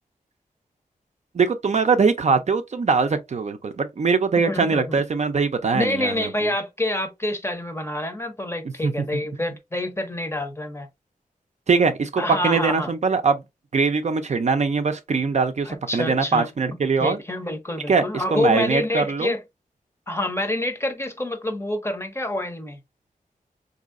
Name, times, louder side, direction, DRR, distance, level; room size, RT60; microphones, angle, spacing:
voice 1, 1.3-6.3 8.8-8.9 11.7-13.4 13.7-17.2 17.9-18.0 18.3-19.3, right 4 dB, 50° right, 0.5 m, -22 dB
voice 2, 4.4-5.0 5.7-10.9 12.2-12.9 15.6-16.5 17.0-19.4 20.1-22.8, left 1 dB, 15° left, 0.6 m, -27 dB
3.9 x 2.7 x 2.4 m
wide cardioid pair, 105°, 15 cm